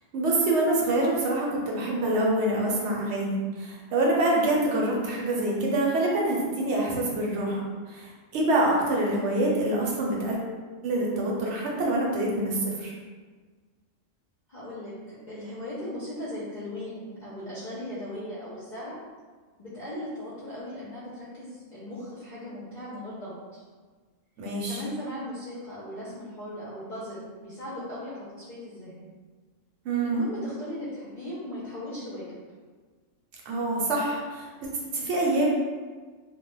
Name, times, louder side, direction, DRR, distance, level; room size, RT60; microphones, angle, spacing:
voice 1, 0.1-10.4 10.8-12.9 24.4-24.8 29.8-30.3 33.5-35.5, right 1 dB, 65° right, -2 dB, 0.9 m, -26 dB
voice 2, 14.5-19.0 19.6-23.6 24.7-29.1 30.0-32.2, left 1 dB, 55° left, -9 dB, 0.5 m, -38 dB
2.2 x 2.1 x 3.0 m, 1.4 s
omnidirectional pair, 1.3 m